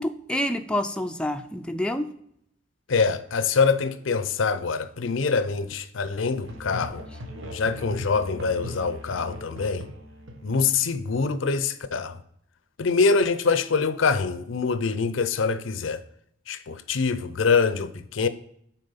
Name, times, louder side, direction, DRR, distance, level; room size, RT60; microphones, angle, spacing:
voice 1, 0.0-2.1, left 1 dB, 5° left, 0.4 m, -28 dB
voice 2, 2.9-7.0 7.5-9.9 10.4-12.2 12.8-16.0 16.5-18.3, left 4 dB, 70° left, 0.6 m, -24 dB
Musical instrument, 6.4-11.2, equal, 85° right, 1.2 m, -39 dB
6.6 x 4.3 x 5.5 m
head